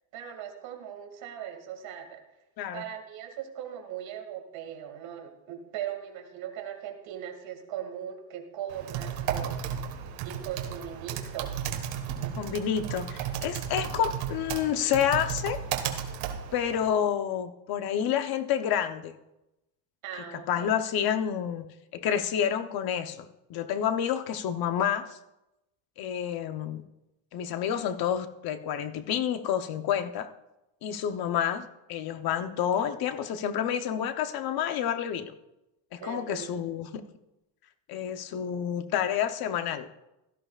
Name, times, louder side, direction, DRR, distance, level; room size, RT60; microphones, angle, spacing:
voice 1, 0.1-2.2 2.7-9.6 10.2-11.5 20.0-20.8 36.0-36.5, right 9 dB, 60° right, 4 dB, 2.4 m, -39 dB
Typing, 8.7-16.9, right 9 dB, 80° right, 1.7 m, -34 dB
voice 2, 12.4-15.6 16.5-19.2 20.5-21.7 21.9-25.2 26.0-26.8 27.3-30.3 30.8-35.3 35.9-37.0 37.9-39.9, left 9 dB, 45° left, 9 dB, 0.9 m, -29 dB
16.5 x 13.5 x 2.5 m, 0.94 s
cardioid pair, 155°, 50 cm